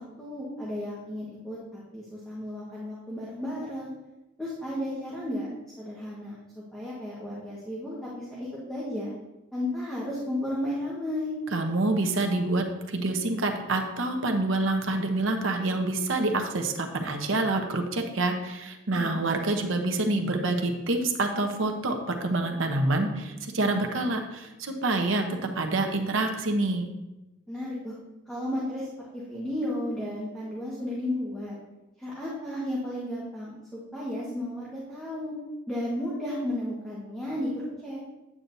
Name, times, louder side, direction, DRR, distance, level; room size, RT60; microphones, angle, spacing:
voice 1, 0.0-3.9 4.4-5.5 5.8-9.1 9.5-11.3 18.9-19.2 27.5-27.9 28.3-31.5 32.0-35.3 35.7-38.0, left 1 dB, ahead, -8 dB, 1.5 m, -33 dB
voice 2, 11.5-26.9, right 2 dB, 75° right, 4 dB, 1.0 m, -27 dB
8.8 x 8.6 x 2.7 m, 1.0 s
head